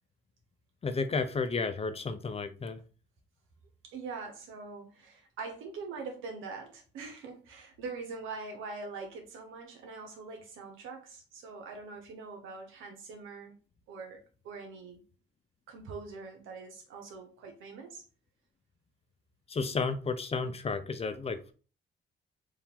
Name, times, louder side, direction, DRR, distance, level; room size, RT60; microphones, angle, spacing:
voice 1, 0.8-2.8 19.5-21.5, left 4 dB, 30° left, 0.6 m, -32 dB
voice 2, 3.8-13.5 13.9-15.0 15.7-18.0, right 4 dB, 90° right, 1.2 m, -43 dB
4.5 x 2.7 x 3.6 m
cardioid pair, 90°, 20 cm